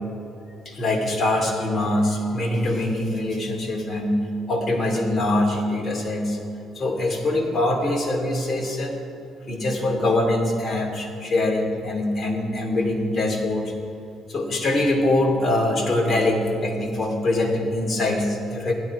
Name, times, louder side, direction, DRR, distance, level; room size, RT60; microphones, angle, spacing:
voice 1, 0.6-4.2 4.5-6.4 6.7-9.0 9.5-13.7 14.3-18.7, left 1 dB, 35° left, 0 dB, 2.7 m, -23 dB
15.5 x 12.0 x 4.8 m, 2.7 s
cardioid pair, 115°, 0 cm